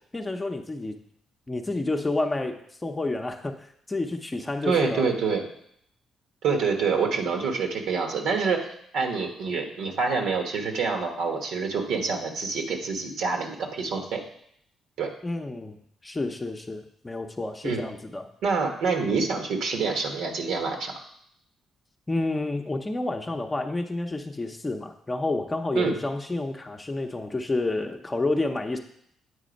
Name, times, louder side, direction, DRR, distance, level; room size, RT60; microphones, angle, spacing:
voice 1, 0.1-1.0 1.5-5.1 15.2-15.8 16.0-18.3 22.1-28.8, left 2 dB, 20° left, 3 dB, 0.6 m, -29 dB
voice 2, 4.7-5.5 6.4-14.2 15.0-15.1 17.6-17.8 18.4-20.9 25.7-26.0, right 5 dB, 80° right, 3 dB, 1.2 m, -26 dB
8.4 x 4.1 x 5.2 m, 0.69 s
cardioid pair, 90°, 0 cm